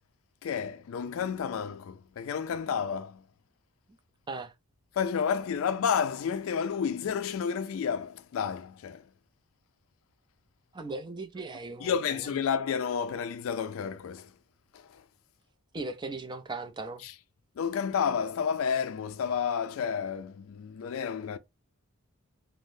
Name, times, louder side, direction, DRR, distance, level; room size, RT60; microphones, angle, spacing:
voice 1, 0.4-3.2 4.9-9.1 11.8-14.3 14.7-15.0 17.0-17.1 17.6-21.4, left 7 dB, 65° left, 0.3 m, -31 dB
voice 2, 10.7-12.3 15.7-17.0, right 3 dB, 20° right, 0.4 m, -38 dB
3.4 x 2.0 x 2.6 m
head